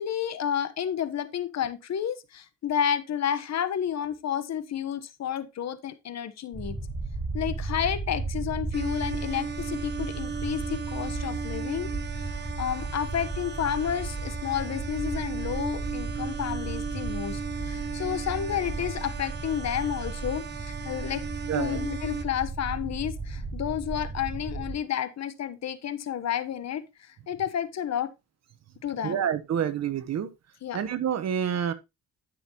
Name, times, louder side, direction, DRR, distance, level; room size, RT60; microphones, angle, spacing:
voice 1, 0.0-6.8 7.3-11.9 12.2-21.2 21.5-28.1 28.8-29.3 30.6-30.8, left 9 dB, 60° left, 1.3 m, -31 dB
sound 1, 6.5-24.7, right 3 dB, 15° right, 4.9 m, -35 dB
sound 2, 8.7-22.2, right 6 dB, 35° right, 1.1 m, -37 dB
voice 2, 21.5-21.8 29.0-30.3 30.7-31.7, right 8 dB, 60° right, 1.2 m, -28 dB
12.0 x 6.3 x 3.0 m
cardioid pair, 90°, 30 cm